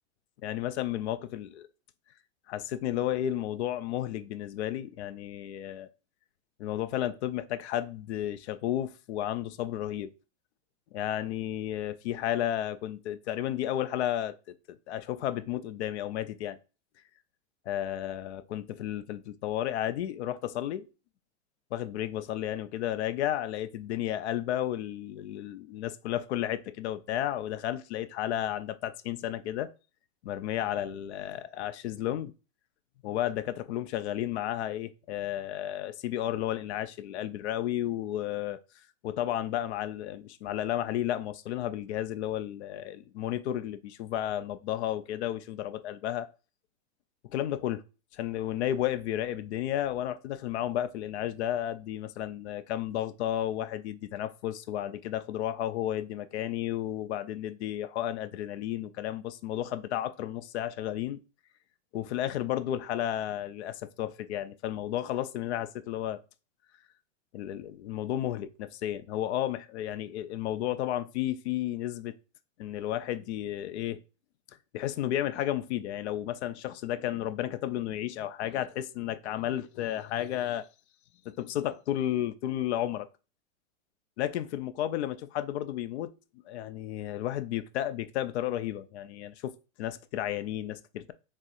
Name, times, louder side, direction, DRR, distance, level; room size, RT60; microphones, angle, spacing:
voice 1, 0.4-1.7 2.5-5.9 6.6-10.1 10.9-14.3 14.7-16.6 17.7-20.9 21.7-29.7 30.2-32.3 33.0-38.6 39.0-46.3 47.3-47.8 48.1-61.2 61.9-66.2 67.3-72.1 72.6-74.0 74.7-80.7 81.3-83.1 84.2-86.1 86.5-91.1, left 12 dB, 65° left, 0.5 m, -32 dB
4.1 x 3.7 x 2.5 m
supercardioid pair, 165°, 36 cm